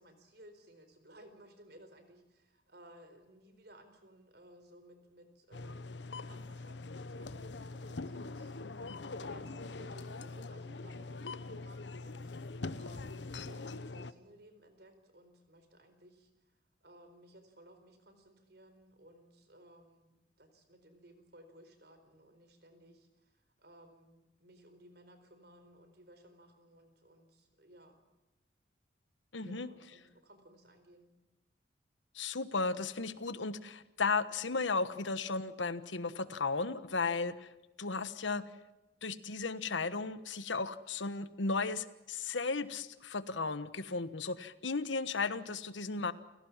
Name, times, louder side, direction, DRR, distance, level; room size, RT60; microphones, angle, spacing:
voice 1, 0.0-8.5 9.2-16.3 16.8-20.1 20.4-28.0 29.4-31.1, right 1 dB, 60° right, 9 dB, 4.4 m, -59 dB
sound 1, 5.5-14.1, left 3 dB, 75° left, 0.9 m, -43 dB
voice 2, 29.3-29.7 32.1-37.5 37.8-38.5 39.0-46.1, left 4 dB, 90° left, 14 dB, 1.3 m, -35 dB
29.0 x 18.0 x 7.4 m, 1.0 s
head